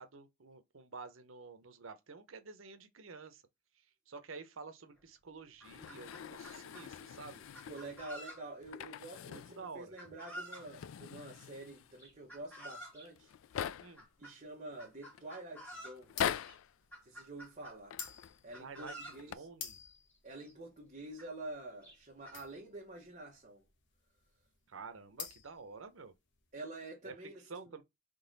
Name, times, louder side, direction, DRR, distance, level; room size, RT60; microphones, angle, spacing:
voice 1, 0.0-3.4 4.1-7.4 9.2-9.9 13.8-14.0 18.6-19.8 24.7-26.1 27.0-27.1 27.5-27.8, right 4 dB, 90° right, 0.8 m, -50 dB
Chicken rooster, 5.0-5.1 5.4-6.9 7.5-8.7 10.0-10.7 12.0-13.1 14.0-14.3 14.8-16.0 16.4-16.6 16.9-18.2 18.5-19.2 20.1-20.2 20.4-20.5 21.2-21.3 21.8-22.4, right 1 dB, 10° left, 2.1 m, -50 dB
sound 1, 5.6-8.1 8.6-9.7 9.9-10.0 10.5-12.0 12.8-12.9 13.1-14.1 14.7-15.2 16.0-16.7 17.8-18.4 19.1-19.3, left 9 dB, 85° left, 0.3 m, -42 dB
voice 2, 7.7-13.3 14.2-16.2 17.0-18.0 18.4-19.5 20.2-23.6 26.5-27.7, right 2 dB, 40° right, 1.2 m, -48 dB
sound 2, 16.1-26.4, left 7 dB, 65° left, 1.0 m, -50 dB
3.9 x 3.2 x 3.9 m
head